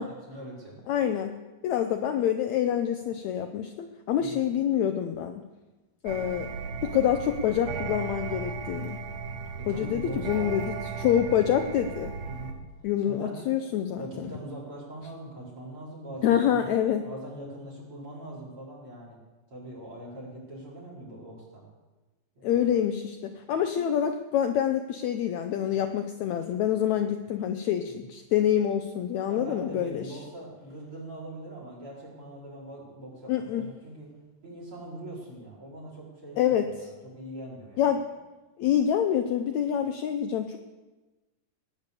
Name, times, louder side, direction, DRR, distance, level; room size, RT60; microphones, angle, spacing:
voice 1, 0.0-0.8 4.2-4.4 9.6-10.6 12.2-12.6 13.0-13.4 14.0-16.7 17.0-19.2 19.5-21.6 22.4-22.7 27.9-28.1 29.3-34.1 34.4-36.5 37.0-38.0, right 1 dB, 40° right, -4 dB, 5.8 m, -42 dB
voice 2, 0.9-1.4 1.6-5.4 6.0-6.5 6.8-9.0 9.7-12.1 12.8-14.3 16.2-17.0 22.4-30.1 33.3-33.7 36.4-36.7 37.8-38.0 38.6-40.6, left 9 dB, 75° left, 7 dB, 1.8 m, -26 dB
sound 1, 6.1-12.5, right 5 dB, 70° right, 2.5 m, -36 dB
19.0 x 9.8 x 6.8 m, 1.2 s
omnidirectional pair, 3.9 m